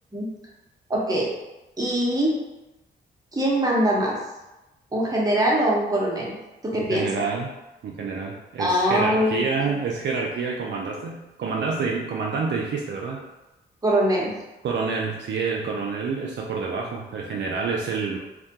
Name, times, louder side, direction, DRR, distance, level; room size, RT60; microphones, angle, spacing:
voice 1, 0.9-1.3 1.8-2.4 3.3-4.2 4.9-6.4 6.7-7.1 8.6-9.5 13.8-14.3, right 1 dB, 15° right, -4 dB, 0.9 m, -22 dB
voice 2, 6.9-7.5 7.8-13.2 14.6-18.2, right 4 dB, 60° right, -2 dB, 0.4 m, -28 dB
2.2 x 2.2 x 2.8 m, 1.0 s
supercardioid pair, 50°, 21 cm